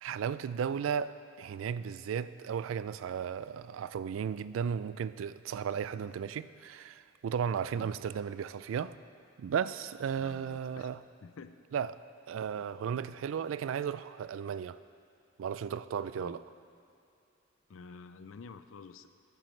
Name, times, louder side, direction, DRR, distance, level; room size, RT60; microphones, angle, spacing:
voice 1, 0.0-9.0 9.4-11.0 11.7-12.0 12.3-14.8 15.4-16.4, right 7 dB, 80° right, 15 dB, 0.3 m, -35 dB
voice 2, 10.2-10.9 11.2-11.6 16.2-16.4 17.7-19.1, left 4 dB, 80° left, 11 dB, 0.5 m, -49 dB
15.0 x 9.1 x 3.2 m, 2.7 s
head